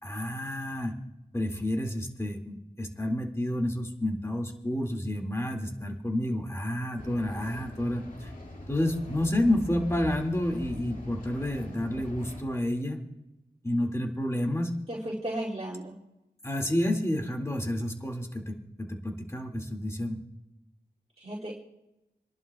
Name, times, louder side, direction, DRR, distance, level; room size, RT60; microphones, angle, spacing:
voice 1, 0.0-0.9 1.3-8.3 8.7-13.0 13.6-14.7 16.4-20.2, left 1 dB, 15° left, 1 dB, 2.1 m, -30 dB
Turbine Oscillations, 7.0-12.4, left 1 dB, 50° left, 2.2 m, -42 dB
voice 2, 14.9-16.0 21.2-21.5, right 1 dB, 35° right, -7 dB, 2.6 m, -34 dB
29.0 x 11.0 x 2.3 m, 0.94 s
wide cardioid pair, 60°, 17 cm